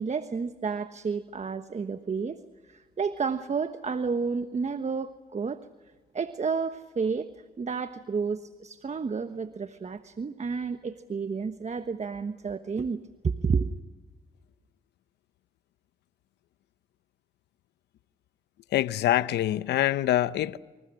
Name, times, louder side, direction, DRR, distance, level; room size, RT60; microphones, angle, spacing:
voice 1, 0.0-2.4 2.7-5.6 6.1-7.3 7.6-13.7, right 5 dB, 40° right, 1.2 m, -31 dB
voice 2, 18.7-20.6, left 13 dB, 90° left, 0.7 m, -25 dB
29.0 x 26.5 x 6.3 m
cardioid pair, 60°, 17 cm